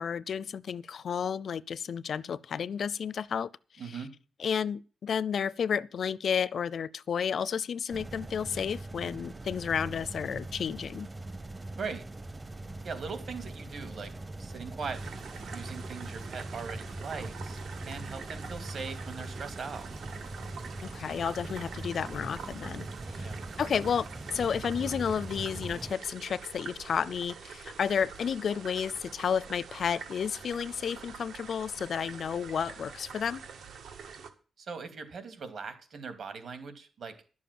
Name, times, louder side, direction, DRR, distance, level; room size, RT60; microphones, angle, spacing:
voice 1, 0.0-3.5 4.4-11.1 20.9-22.9 23.1-23.3 23.6-33.4, left 7 dB, 60° left, 0.5 m, -32 dB
voice 2, 3.8-4.1 11.8-12.0 12.8-14.1 14.4-19.9 23.2-23.4 34.6-37.1, right 5 dB, 60° right, 2.6 m, -40 dB
sound 1, 7.9-25.9, right 2 dB, 20° right, 0.7 m, -41 dB
sound 2, 14.9-34.3, right 6 dB, 80° right, 1.8 m, -46 dB
11.5 x 7.1 x 7.6 m
wide cardioid pair, 130°, 0 cm